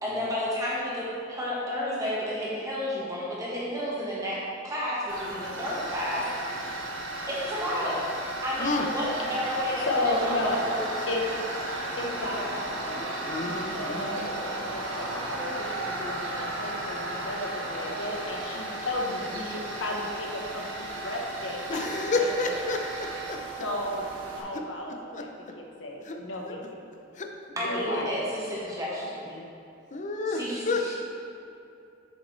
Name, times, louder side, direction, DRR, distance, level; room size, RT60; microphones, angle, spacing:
voice 1, 0.0-6.6 7.3-8.1 8.4-11.0 27.6-29.3 30.3-31.0, equal, 20° right, -7 dB, 1.5 m, -31 dB
Tools, 5.1-24.4, right 2 dB, 80° right, 1.1 m, -35 dB
voice 2, 9.8-10.7 11.1-11.2 12.0-13.1 13.4-22.6 23.3-24.1 24.3-25.3 25.5-26.8 27.6-28.3, left 1 dB, 80° left, -1 dB, 1.1 m, -34 dB
voice 3, 13.2-14.2 21.7-23.4 25.1-25.3 26.0-26.2 26.5-26.6 27.2-27.3 29.3-29.5 29.9-31.0, left 3 dB, 40° left, 3 dB, 0.6 m, -30 dB
8.1 x 6.3 x 3.3 m, 2.7 s
head